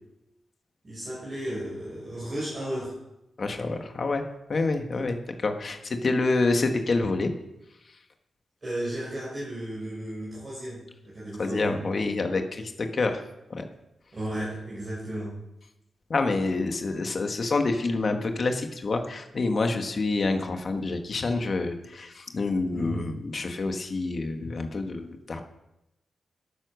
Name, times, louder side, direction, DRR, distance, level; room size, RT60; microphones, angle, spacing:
voice 1, 0.8-2.9 4.9-5.0 8.6-11.8 14.1-15.3 22.7-23.1, right 1 dB, 30° right, -7 dB, 6.0 m, -34 dB
voice 2, 3.4-7.3 11.4-13.2 13.5-13.6 16.1-25.4, left 3 dB, 40° left, 5 dB, 1.6 m, -27 dB
13.0 x 10.0 x 6.4 m, 0.90 s
wide cardioid pair, 150°, 0 cm